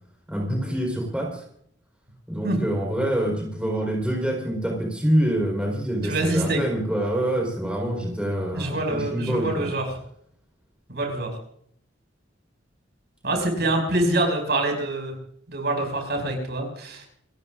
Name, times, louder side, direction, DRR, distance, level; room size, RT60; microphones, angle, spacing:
voice 1, 0.3-1.4 2.3-9.7, right 1 dB, 5° right, -1 dB, 4.5 m, -26 dB
voice 2, 6.0-6.6 8.5-9.8 10.9-11.4 13.2-15.1 15.5-17.1, right 1 dB, 60° right, 3 dB, 5.9 m, -25 dB
28.0 x 15.0 x 2.6 m, 0.68 s
head